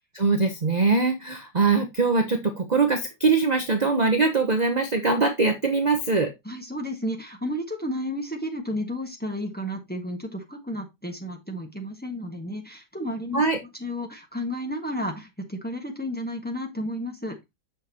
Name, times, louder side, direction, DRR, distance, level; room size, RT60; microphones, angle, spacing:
voice 1, 0.1-6.3 13.3-13.6, right 4 dB, 35° right, 4 dB, 0.8 m, -22 dB
voice 2, 6.4-13.4 13.8-17.4, equal, 5° left, 2 dB, 1.3 m, -32 dB
7.8 x 6.2 x 2.8 m, 0.20 s
omnidirectional pair, 1.8 m